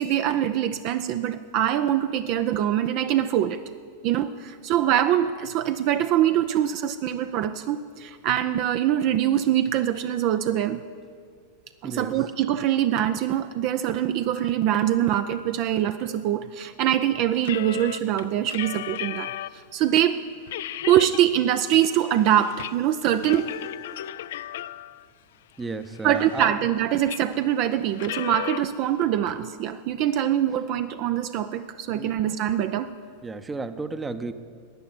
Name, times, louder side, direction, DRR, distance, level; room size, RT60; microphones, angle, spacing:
voice 1, 0.0-3.6 4.0-10.8 11.8-20.2 20.9-23.5 26.0-32.9, right 11 dB, 40° right, 10 dB, 0.5 m, -24 dB
voice 2, 11.8-12.1 25.6-26.5 31.9-32.1 33.2-34.3, right 3 dB, 15° right, 11 dB, 0.8 m, -33 dB
sound 1, 17.4-19.6 20.0-20.1 20.5-21.2 21.6-22.7 23.0-25.1 25.6-26.7 27.1-27.4 27.9-28.6, left 12 dB, 55° left, 0.3 m, -35 dB
13.5 x 9.3 x 9.7 m, 2.2 s
figure-of-eight pair, 90°, 0 cm